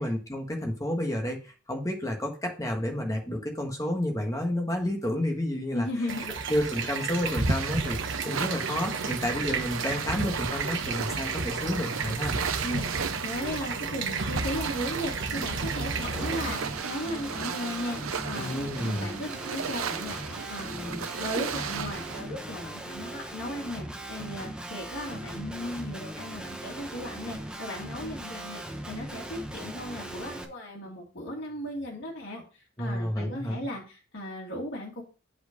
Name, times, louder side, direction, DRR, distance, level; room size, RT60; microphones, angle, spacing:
voice 1, 0.0-5.9 6.5-8.0 8.2-12.4 18.4-19.1 32.8-33.6, left 1 dB, 15° left, 2 dB, 1.5 m, -30 dB
voice 2, 5.7-6.3 12.6-12.9 13.2-35.0, left 1 dB, 55° left, -4 dB, 2.2 m, -36 dB
sound 1, 6.1-16.5, right 3 dB, 60° right, 1.2 m, -32 dB
sound 2, 7.1-22.2, right 7 dB, 75° right, 0.7 m, -36 dB
Guitar, 16.1-30.4, right 1 dB, 5° right, 0.9 m, -39 dB
8.1 x 4.4 x 5.2 m, 0.35 s
head